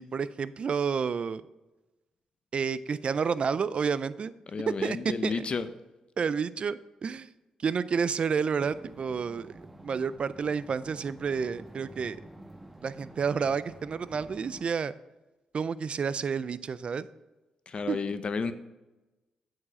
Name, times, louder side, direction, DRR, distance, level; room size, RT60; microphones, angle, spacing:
voice 1, 0.0-1.4 2.5-4.3 4.8-5.0 5.2-5.5 6.2-7.3 7.6-12.2 12.8-14.9 15.5-17.1 17.9-18.0, right 6 dB, 55° right, 16 dB, 0.4 m, -30 dB
voice 2, 4.5-5.7 17.7-18.5, left 5 dB, 50° left, 11 dB, 0.6 m, -32 dB
sound 1, 8.6-14.6, right 1 dB, 15° right, 1.6 m, -49 dB
8.5 x 4.8 x 5.0 m, 1.1 s
cardioid pair, 60°, 2 cm